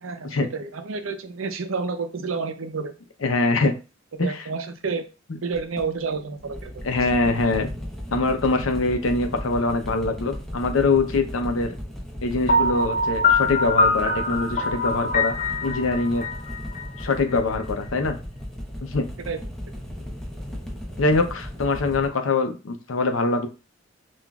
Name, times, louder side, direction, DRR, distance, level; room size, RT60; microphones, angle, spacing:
voice 1, 0.0-2.9 4.2-5.0 5.4-6.7 19.3-19.4, right 4 dB, 90° right, 8 dB, 0.6 m, -29 dB
voice 2, 3.2-3.7 4.2-4.3 6.8-7.7 8.1-11.7 12.2-15.3 15.6-16.2 17.0-18.2 18.8-19.0 21.0-23.5, left 3 dB, 85° left, 6 dB, 0.7 m, -23 dB
sound 1, 5.5-22.1, equal, ahead, 0.7 m, -36 dB
Piano, 12.5-17.3, left 2 dB, 40° left, 0.6 m, -23 dB
5.8 x 2.5 x 2.3 m, 0.31 s
head